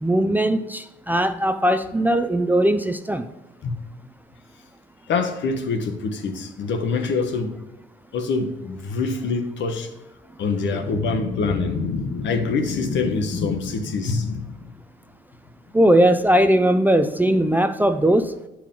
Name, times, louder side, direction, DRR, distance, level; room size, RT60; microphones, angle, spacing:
voice 1, 0.0-3.3 15.7-18.3, right 1 dB, 10° right, 0.4 m, -19 dB
voice 2, 5.1-7.5 8.1-9.9 10.4-14.6, left 4 dB, 70° left, 1.0 m, -25 dB
8.8 x 4.7 x 3.6 m
cardioid pair, 90°, 20 cm